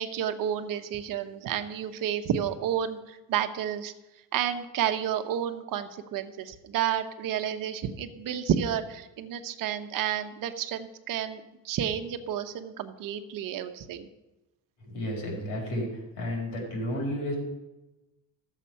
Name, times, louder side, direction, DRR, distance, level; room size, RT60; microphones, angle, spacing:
voice 1, 0.0-3.9 4.3-14.1, right 9 dB, 55° right, 8 dB, 0.9 m, -31 dB
voice 2, 14.8-17.3, equal, 80° left, -1 dB, 4.6 m, -32 dB
13.5 x 7.5 x 5.6 m, 1.0 s
cardioid pair, 155°, 41 cm